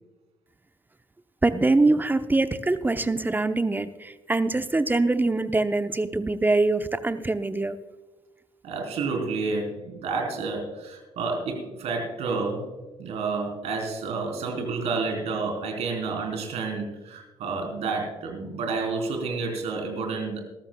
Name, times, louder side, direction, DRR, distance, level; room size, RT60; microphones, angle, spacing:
voice 1, 1.4-7.8, right 2 dB, 15° right, 11 dB, 0.8 m, -23 dB
voice 2, 8.6-20.4, right 4 dB, 65° right, 1 dB, 3.6 m, -30 dB
20.0 x 13.5 x 2.3 m, 1.1 s
hypercardioid pair, 50°, 12 cm